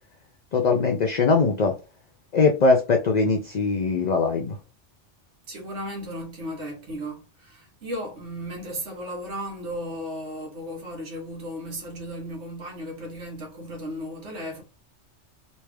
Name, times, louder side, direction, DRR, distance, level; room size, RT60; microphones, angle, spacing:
voice 1, 0.5-1.7 2.3-4.6, left 4 dB, 50° left, 0.5 m, -21 dB
voice 2, 5.5-14.6, equal, 75° right, 1.5 m, -35 dB
3.2 x 2.6 x 3.3 m
omnidirectional pair, 1.2 m